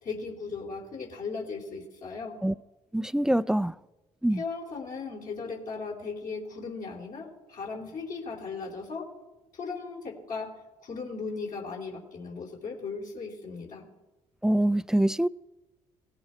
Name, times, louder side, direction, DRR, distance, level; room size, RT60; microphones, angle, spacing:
voice 1, 0.0-2.4 4.3-9.1 9.5-10.5 10.8-13.9, left 4 dB, 60° left, 3.5 m, -37 dB
voice 2, 2.9-3.7 4.2-4.4 14.4-15.3, right 1 dB, 5° right, 0.5 m, -24 dB
18.5 x 15.0 x 4.5 m
hypercardioid pair, 55°, 16 cm